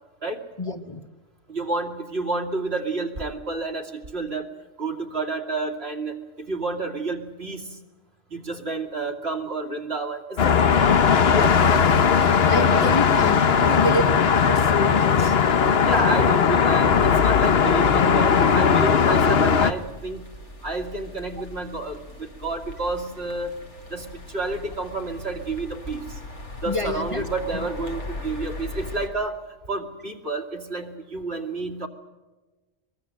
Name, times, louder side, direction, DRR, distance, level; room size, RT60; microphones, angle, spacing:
voice 1, 0.6-1.0 12.5-15.4 26.6-27.2 27.5-27.7, left 1 dB, 30° left, 6 dB, 1.4 m, -28 dB
voice 2, 1.5-4.5 4.8-7.8 8.3-11.9 12.6-12.9 15.8-20.2 20.6-23.6 23.9-26.2 26.6-29.4 29.7-31.9, right 2 dB, 60° right, 4 dB, 2.8 m, -30 dB
sound 1, 10.4-19.7, left 6 dB, 60° left, 1.2 m, -18 dB
sound 2, 18.2-29.1, left 2 dB, 80° left, 4.1 m, -39 dB
23.5 x 22.5 x 7.7 m, 1.2 s
omnidirectional pair, 1.2 m